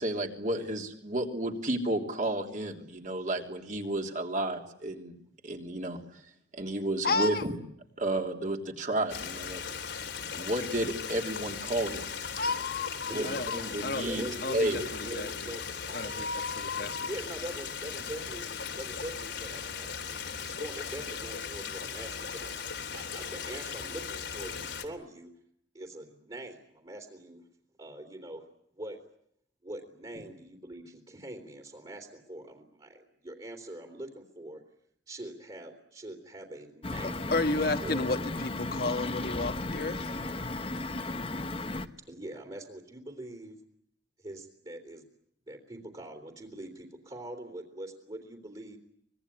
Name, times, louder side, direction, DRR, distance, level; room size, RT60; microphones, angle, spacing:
voice 1, 0.0-5.1 5.4-6.0 6.5-7.6 8.0-9.6 10.3-12.1 13.1-14.2 14.5-14.8 15.1-15.2, right 1 dB, 45° right, 3 dB, 3.3 m, -32 dB
voice 2, 7.0-7.4 12.4-14.0 14.4-15.5 15.9-17.1 37.3-40.3, left 3 dB, 55° left, 8 dB, 1.4 m, -32 dB
Stream, 9.1-24.8, left 6 dB, 80° left, 3.2 m, -38 dB
voice 3, 13.9-16.2 17.1-18.4 18.7-25.3 25.7-27.4 27.8-28.5 28.7-29.0 29.6-34.6 35.1-37.2 37.8-38.1 42.0-43.6 44.2-45.1 45.5-48.8, right 1 dB, 30° right, 3 dB, 3.3 m, -43 dB
sound 1, 36.8-41.9, left 2 dB, 30° left, 1.1 m, -35 dB
25.0 x 20.5 x 10.0 m, 0.72 s
head